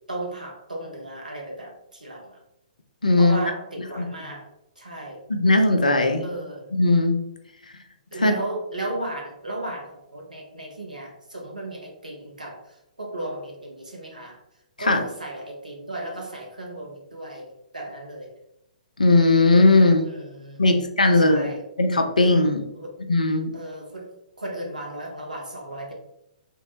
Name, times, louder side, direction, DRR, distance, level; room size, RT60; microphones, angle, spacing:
voice 1, 0.1-2.4 3.2-4.5 4.8-5.2 6.2-6.7 8.1-14.4 14.8-18.3 20.0-21.6 22.7-23.0 23.5-24.1 24.4-25.9, right 1 dB, 85° right, 0 dB, 0.9 m, -35 dB
voice 2, 3.0-3.4 4.0-4.1 5.3-6.2 6.7-7.2 8.2-8.3 14.9-15.0 19.0-20.1 20.6-21.5 21.8-22.6 23.1-23.5, left 2 dB, 80° left, 5 dB, 0.5 m, -18 dB
3.5 x 2.1 x 2.9 m, 0.83 s
figure-of-eight pair, 120°, 4 cm